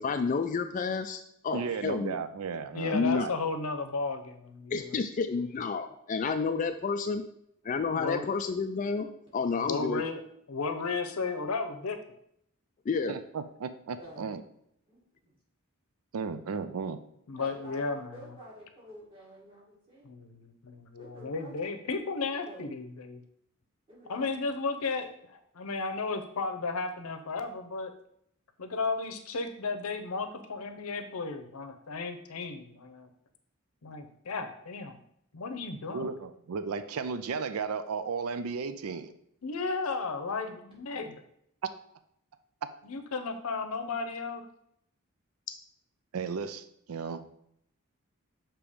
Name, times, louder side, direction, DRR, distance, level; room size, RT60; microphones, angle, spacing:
voice 1, 0.0-2.1 2.9-3.3 4.7-7.2 7.7-9.1 9.3-10.0 12.9-13.1, left 5 dB, 35° left, 8 dB, 0.3 m, -30 dB
voice 2, 1.5-3.3 13.1-14.4 16.1-17.0 35.9-39.1 41.6-41.7 46.1-47.2, right 5 dB, 85° right, 11 dB, 0.4 m, -34 dB
voice 3, 2.7-4.9 8.0-8.3 9.6-10.2 10.5-12.0 17.3-18.2 20.0-23.2 24.1-25.0 25.5-27.9 28.6-33.1 33.8-35.0 35.3-36.1 39.4-41.1 42.8-44.4, left 4 dB, 80° left, 7 dB, 0.7 m, -34 dB
voice 4, 14.0-14.3 14.9-15.4 17.3-20.2 21.0-21.6 22.5-22.6 23.9-24.3, equal, 25° right, -5 dB, 2.1 m, -49 dB
6.9 x 3.0 x 4.9 m, 0.72 s
head